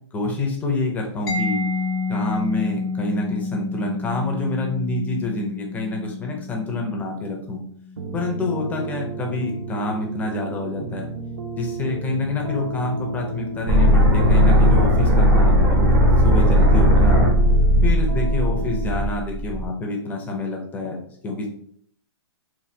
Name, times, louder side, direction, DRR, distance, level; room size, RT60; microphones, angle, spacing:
voice 1, 0.1-1.6 2.1-7.6 8.1-11.1 11.5-16.0 16.2-17.3 17.8-21.0 21.2-21.5, left 2 dB, 10° left, 1 dB, 0.5 m, -27 dB
Mallet percussion, 1.3-8.8, left 4 dB, 60° left, 0.6 m, -30 dB
sound 1, 8.0-19.1, right 3 dB, 85° right, 0.5 m, -33 dB
sound 2, 13.7-19.7, equal, 25° right, 0.7 m, -16 dB
3.2 x 2.2 x 2.7 m, 0.63 s
hypercardioid pair, 145°, 15 cm